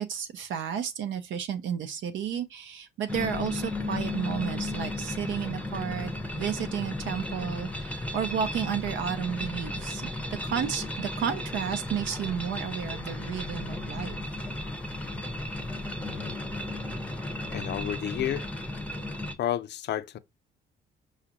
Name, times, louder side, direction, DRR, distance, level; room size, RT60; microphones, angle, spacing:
voice 1, 0.0-10.1 10.4-14.2, right 8 dB, 75° right, 0.6 m, -32 dB
sound 1, 3.1-19.3, left 1 dB, 5° left, 0.6 m, -34 dB
voice 2, 16.0-16.4 17.5-18.5 19.4-20.2, left 11 dB, 60° left, 0.5 m, -31 dB
5.0 x 2.4 x 2.8 m
cardioid pair, 90°, 20 cm